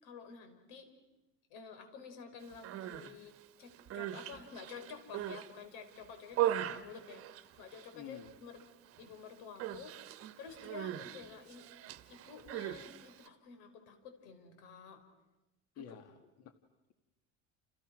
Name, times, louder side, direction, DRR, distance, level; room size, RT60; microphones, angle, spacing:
voice 1, 0.0-0.9 1.5-3.3 3.6-8.6 9.0-9.9 10.4-11.7 12.1-15.0 15.8-16.0, left 5 dB, 85° left, 7 dB, 5.6 m, -50 dB
Human voice, 2.5-3.1 3.7-5.5 5.9-7.9 8.2-8.6 8.9-9.1 9.6-13.3, right 12 dB, 40° right, 1.2 m, -39 dB
voice 2, 7.9-8.3 15.8-16.5, left 9 dB, 45° left, 7 dB, 1.6 m, -50 dB
30.0 x 29.5 x 6.2 m, 0.98 s
cardioid pair, 175°, 34 cm